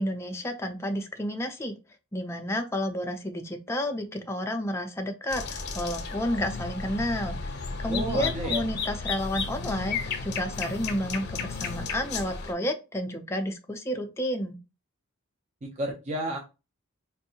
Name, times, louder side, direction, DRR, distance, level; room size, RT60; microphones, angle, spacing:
voice 1, 0.0-1.7 2.1-14.6, equal, 10° left, 4 dB, 0.4 m, -31 dB
sound 1, 5.3-12.5, left 5 dB, 50° left, 0.7 m, -34 dB
sound 2, 6.4-11.9, left 4 dB, 90° left, 0.4 m, -39 dB
voice 2, 7.9-8.6 15.6-16.4, right 1 dB, 35° right, 0 dB, 0.6 m, -31 dB
4.4 x 2.6 x 2.7 m, 0.29 s
head